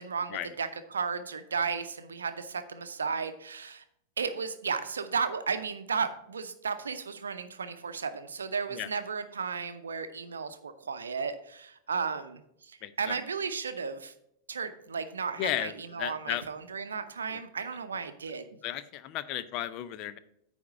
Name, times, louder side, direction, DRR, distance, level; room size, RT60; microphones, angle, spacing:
voice 1, 0.0-3.8 4.2-14.1 14.5-18.6, right 5 dB, 70° right, 10 dB, 0.6 m, -34 dB
voice 2, 12.8-13.2 15.4-15.7 16.0-16.4 18.6-20.2, left 12 dB, 40° left, 14 dB, 0.5 m, -34 dB
9.4 x 3.6 x 6.2 m, 0.74 s
figure-of-eight pair, 90°, 0 cm